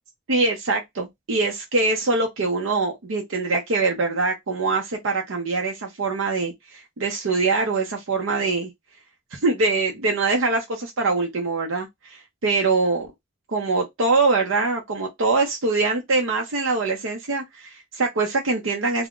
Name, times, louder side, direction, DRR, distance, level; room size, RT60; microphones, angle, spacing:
voice 1, 0.3-8.7 9.3-13.1 13.5-19.1, right 3 dB, 80° right, 0.6 m, -23 dB
2.3 x 2.1 x 3.5 m
head